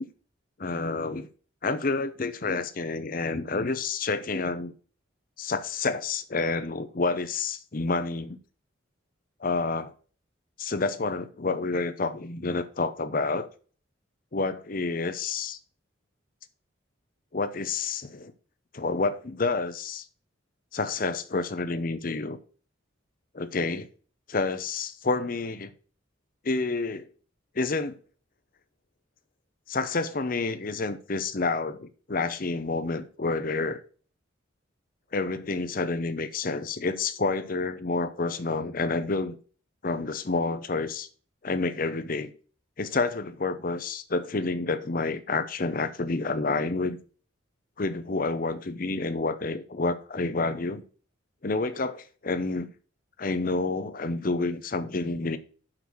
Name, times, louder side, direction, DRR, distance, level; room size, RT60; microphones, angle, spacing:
voice 1, 0.6-1.3 1.6-4.7 5.4-8.4 9.4-9.9 10.6-13.5 14.3-15.6 17.3-18.3 18.7-20.0 20.7-22.4 23.3-23.9 24.3-25.7 26.4-27.1 27.6-28.0 29.7-33.8 35.1-39.4 39.8-41.1 41.4-42.3 42.8-47.0 47.8-50.8 51.4-52.7 53.2-55.4, left 3 dB, 45° left, 0.7 m, -29 dB
6.4 x 5.9 x 6.1 m
head